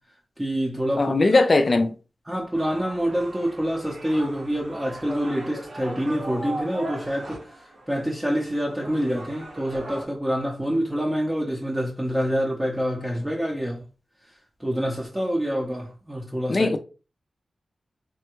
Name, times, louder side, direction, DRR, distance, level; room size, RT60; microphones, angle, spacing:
voice 1, 0.4-1.1 2.3-13.8 14.6-16.7, equal, 15° right, 0.6 m, -26 dB
voice 2, 1.0-1.9 16.5-16.8, left 3 dB, 45° left, 0.4 m, -19 dB
sound 1, 2.5-10.1, right 1 dB, 85° right, 1.1 m, -38 dB
3.4 x 2.2 x 2.9 m
wide cardioid pair, 85°, 0 cm